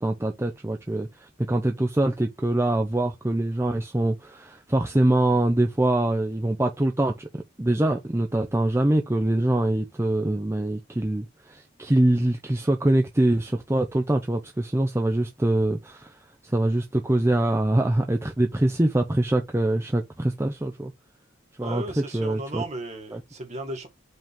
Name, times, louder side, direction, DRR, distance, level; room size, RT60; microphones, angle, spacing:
voice 1, 0.0-7.3 7.6-16.1 16.4-20.9 21.6-21.8 22.1-22.6 23.1-23.2, right 1 dB, 15° right, 0.6 m, -24 dB
voice 2, 21.6-23.9, right 2 dB, 35° right, 1.9 m, -35 dB
5.3 x 3.7 x 5.2 m
head